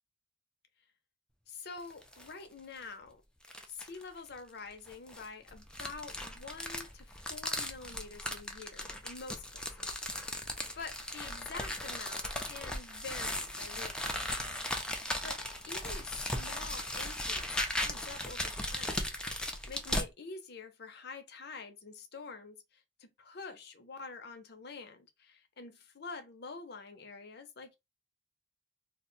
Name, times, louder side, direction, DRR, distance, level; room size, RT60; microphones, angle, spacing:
voice 1, 1.5-3.2 3.7-9.9 10.7-14.0 15.2-19.0 19.7-27.8, left 4 dB, 60° left, 0.6 m, -47 dB
sound 1, 1.8-2.3 2.8-2.9 3.4-4.0 4.9-20.1, left 1 dB, 5° left, 0.5 m, -37 dB
2.5 x 2.1 x 3.9 m
head